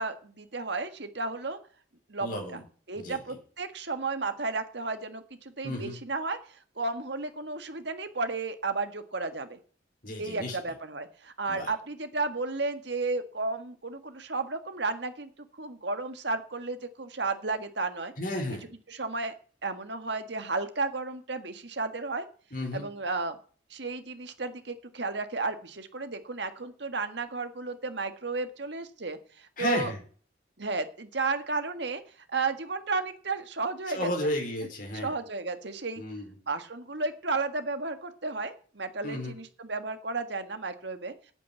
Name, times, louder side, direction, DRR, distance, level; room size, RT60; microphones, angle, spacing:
voice 1, 0.0-1.6 2.1-2.6 2.9-9.6 10.2-18.1 18.9-19.3 19.6-22.3 22.7-23.4 23.7-29.9 30.6-32.0 32.3-34.3 34.9-36.0 36.5-41.3, right 3 dB, 60° right, 8 dB, 1.6 m, -33 dB
voice 2, 2.2-2.6 3.0-3.4 5.6-6.0 10.0-10.6 11.5-11.7 18.2-18.7 22.5-22.9 29.6-30.0 33.9-35.1 36.0-36.3 39.0-39.4, left 1 dB, 45° left, 1 dB, 4.8 m, -33 dB
9.1 x 8.7 x 8.4 m, 0.43 s
head